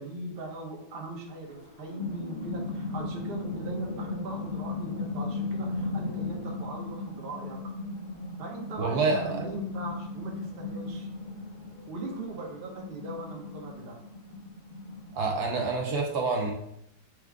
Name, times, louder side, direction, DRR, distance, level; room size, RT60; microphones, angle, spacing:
voice 1, 0.0-7.7 8.4-11.1 11.9-14.0, right 2 dB, 45° right, -1 dB, 0.8 m, -40 dB
sound 1, 1.5-15.8, left 3 dB, 75° left, 0.4 m, -37 dB
voice 2, 8.8-9.4 15.1-16.5, right 3 dB, 65° right, 1 dB, 1.2 m, -27 dB
4.8 x 2.2 x 4.7 m, 0.78 s
omnidirectional pair, 2.0 m